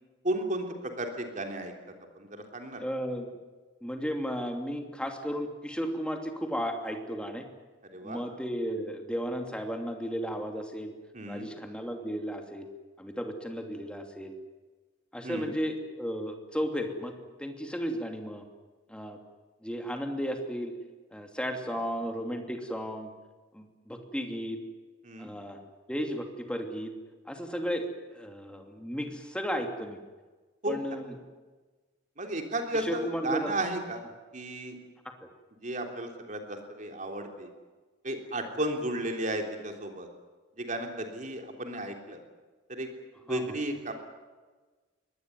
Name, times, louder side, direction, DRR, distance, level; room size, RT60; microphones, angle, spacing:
voice 1, 0.2-2.8 7.9-8.2 11.1-11.5 15.2-15.5 21.7-21.9 25.0-25.3 30.6-30.8 32.2-34.0 34.3-34.8 35.6-37.5 38.0-40.1 40.6-42.2 42.7-42.9 43.3-43.9, right 1 dB, 40° right, 4 dB, 3.5 m, -34 dB
voice 2, 2.8-3.3 3.8-7.5 8.0-10.9 11.3-12.7 13.0-14.3 15.1-18.4 18.9-19.2 19.6-20.7 21.1-23.1 23.5-24.6 25.2-25.6 25.9-26.9 27.3-30.0 30.7-31.1 32.8-33.5 43.3-43.4, equal, 5° left, 4 dB, 2.9 m, -34 dB
23.0 x 19.5 x 9.5 m, 1.3 s
head